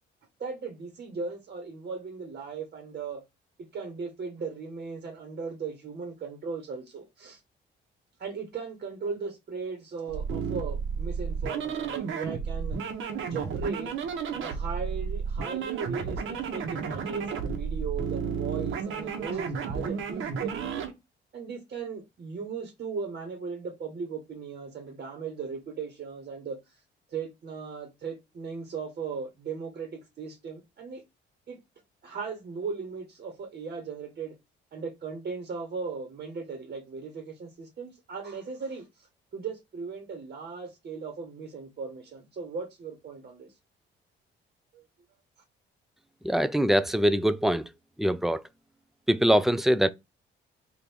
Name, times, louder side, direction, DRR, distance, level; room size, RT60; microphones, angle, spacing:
voice 1, 0.4-3.2 3.7-7.4 8.2-12.8 13.2-13.9 14.4-20.8 21.3-26.6 27.1-31.0 31.5-31.6 32.0-34.3 34.7-38.8 39.3-43.5 44.7-44.8, right 5 dB, 50° right, 1.2 m, -37 dB
sound 1, 10.1-20.9, right 6 dB, 80° right, 1.0 m, -32 dB
voice 2, 46.2-47.7 48.0-48.4 49.1-49.9, equal, ahead, 0.3 m, -23 dB
3.4 x 2.5 x 4.5 m
cardioid pair, 90°, 20 cm